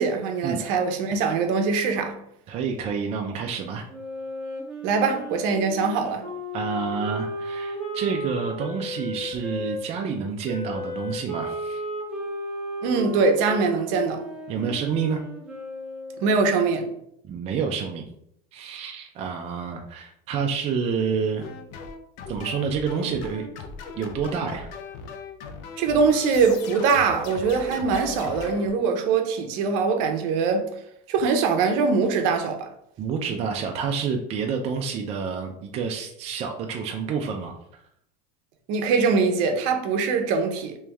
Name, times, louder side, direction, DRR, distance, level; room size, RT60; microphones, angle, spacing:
voice 1, 0.0-2.2 4.8-6.2 12.8-14.2 16.2-16.9 25.8-30.7 31.1-32.7 38.7-40.8, right 5 dB, 60° right, 0.8 m, -22 dB
voice 2, 2.5-3.9 6.5-11.8 14.5-15.2 17.2-18.1 18.5-21.5 22.3-23.4 24.0-24.7 33.0-37.5, right 6 dB, 30° right, 0.4 m, -28 dB
Wind instrument woodwind instrument, 3.9-9.8 10.4-16.3, equal, ahead, 1.0 m, -34 dB
sound 1, 21.4-28.7, left 5 dB, 60° left, 0.6 m, -39 dB
3.3 x 3.1 x 3.4 m
supercardioid pair, 135°, 20 cm